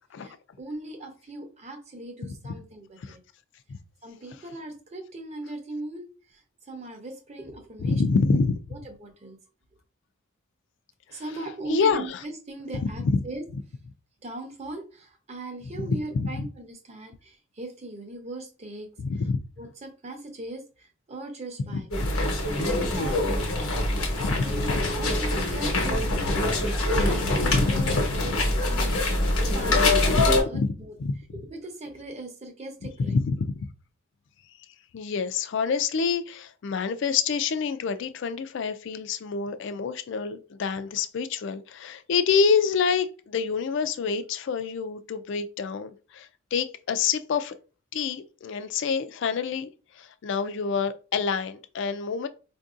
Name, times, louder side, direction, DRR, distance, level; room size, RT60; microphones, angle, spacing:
voice 1, 0.2-3.2 4.0-8.0 8.7-9.4 11.1-13.4 14.2-18.9 19.6-21.9 22.6-23.5 24.1-26.5 27.0-28.4 28.6-29.0 29.5-30.9 31.3-33.2, right 2 dB, 30° right, 0.7 m, -39 dB
voice 2, 7.8-8.5 11.1-11.2 11.7-12.2 13.0-13.2 15.7-16.5 19.0-19.4 24.2-24.7 27.4-28.0 30.1-30.2 30.5-30.7 31.0-31.1 33.0-33.5 34.9-47.5 47.9-49.7 50.0-52.3, left 5 dB, 60° left, 0.3 m, -27 dB
sound 1, 21.9-30.4, left 2 dB, 85° left, 1.0 m, -24 dB
4.4 x 2.6 x 2.4 m
head